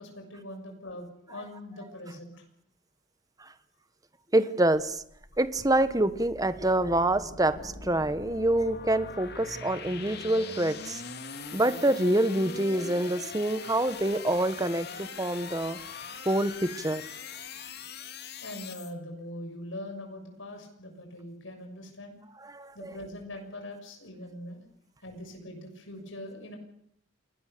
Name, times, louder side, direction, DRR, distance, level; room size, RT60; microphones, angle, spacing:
voice 1, 0.0-2.4 17.5-17.8 18.4-22.2 22.7-24.6 25.0-26.6, left 1 dB, 80° left, 3 dB, 6.6 m, -42 dB
voice 2, 4.3-5.0 5.4-11.0 11.5-15.8 16.2-17.0 22.5-22.9, right 1 dB, 20° right, 12 dB, 1.3 m, -26 dB
sound 1, 4.8-18.9, left 5 dB, 55° left, 2.4 m, -42 dB
29.0 x 20.5 x 6.8 m, 0.71 s
head